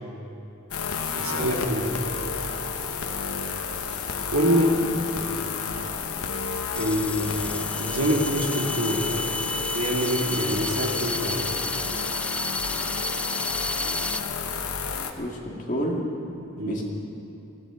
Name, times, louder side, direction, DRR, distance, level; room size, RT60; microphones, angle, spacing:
sound 1, 0.7-15.1, left 5 dB, 85° left, 1.1 m, -31 dB
voice 1, 1.2-1.9 4.3-4.8 6.7-9.1 9.7-11.6 16.6-16.8, equal, 80° right, -1 dB, 2.6 m, -25 dB
sound 2, 6.7-14.2, left 1 dB, 5° left, 0.3 m, -32 dB
voice 2, 15.1-16.1 16.7-16.8, equal, 35° left, -2 dB, 2.2 m, -30 dB
19.0 x 14.5 x 5.1 m, 3.0 s
head